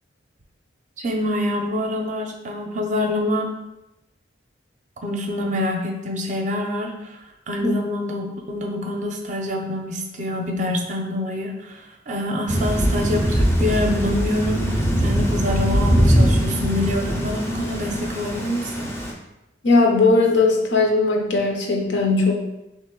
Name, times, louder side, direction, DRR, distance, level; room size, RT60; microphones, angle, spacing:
voice 1, 1.0-3.5 5.0-7.2 7.5-14.8 15.0-18.9, left 1 dB, 40° right, 2 dB, 0.5 m, -26 dB
Thunder / Rain, 12.5-19.1, equal, 15° left, 0.5 m, -21 dB
voice 2, 19.6-22.3, left 3 dB, 70° left, 1 dB, 0.7 m, -18 dB
3.4 x 2.9 x 3.7 m, 0.93 s
head